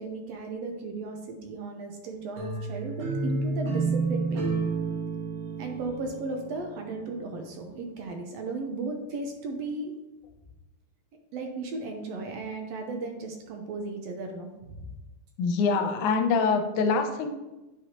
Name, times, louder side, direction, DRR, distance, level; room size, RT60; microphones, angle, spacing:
voice 1, 0.0-4.4 5.6-9.9 11.3-14.9 15.7-15.8, right 3 dB, 70° right, 3 dB, 1.7 m, -35 dB
sound 1, 2.4-7.3, right 3 dB, 85° right, 3.0 m, -30 dB
voice 2, 15.4-17.3, left 4 dB, 80° left, 6 dB, 2.1 m, -24 dB
10.0 x 5.1 x 2.9 m, 1.1 s
omnidirectional pair, 3.6 m